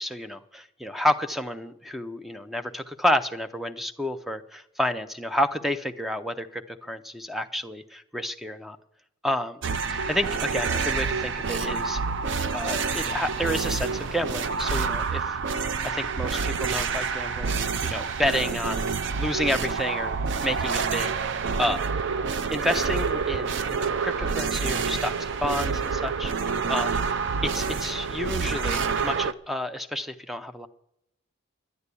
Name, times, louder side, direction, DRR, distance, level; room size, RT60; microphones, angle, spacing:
voice 1, 0.0-8.8 9.2-9.6 9.9-12.0 12.5-15.4 15.8-21.1 21.6-21.8 22.5-27.0 27.4-30.7, left 1 dB, ahead, 10 dB, 0.5 m, -30 dB
sound 1, 9.6-29.3, right 5 dB, 55° right, 0.4 m, -28 dB
11.0 x 10.5 x 8.3 m, 0.82 s
head